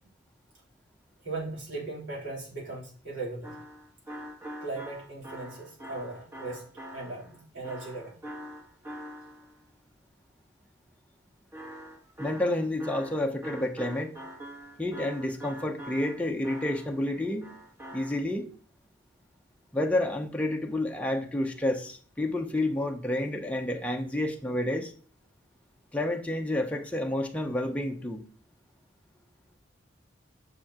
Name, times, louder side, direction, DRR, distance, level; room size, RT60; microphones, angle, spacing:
voice 1, 1.2-3.5 4.6-6.6 6.9-8.1, right 3 dB, 75° right, -5 dB, 3.7 m, -38 dB
sound 1, 3.4-9.6 11.5-17.1 17.4-18.2, right 1 dB, 15° right, 1.5 m, -44 dB
voice 2, 12.2-14.1 14.8-17.5 17.9-18.5 19.7-24.9 25.9-28.2, left 1 dB, 5° left, 2 dB, 0.7 m, -29 dB
6.9 x 6.6 x 2.9 m, 0.43 s
head